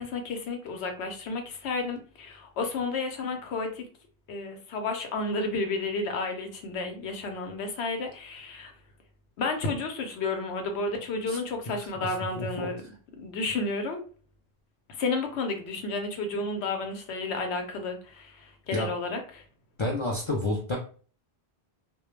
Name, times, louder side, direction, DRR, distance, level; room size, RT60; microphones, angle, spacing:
voice 1, 0.0-3.9 4.3-8.7 9.4-12.8 13.2-14.0 14.9-19.4, left 3 dB, 85° left, 5 dB, 0.9 m, -32 dB
voice 2, 12.4-12.7 18.7-18.9 19.8-20.8, left 1 dB, 55° left, -1 dB, 0.3 m, -29 dB
2.2 x 2.2 x 3.0 m, 0.41 s
omnidirectional pair, 1.1 m